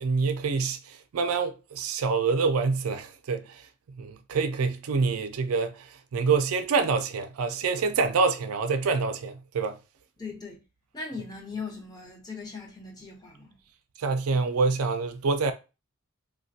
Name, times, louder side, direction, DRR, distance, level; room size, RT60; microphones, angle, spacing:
voice 1, 0.0-9.8 14.0-15.5, right 4 dB, 80° right, 0.4 m, -26 dB
voice 2, 10.2-10.6 10.9-13.5, left 4 dB, 20° left, 0.7 m, -39 dB
3.2 x 2.2 x 2.6 m
head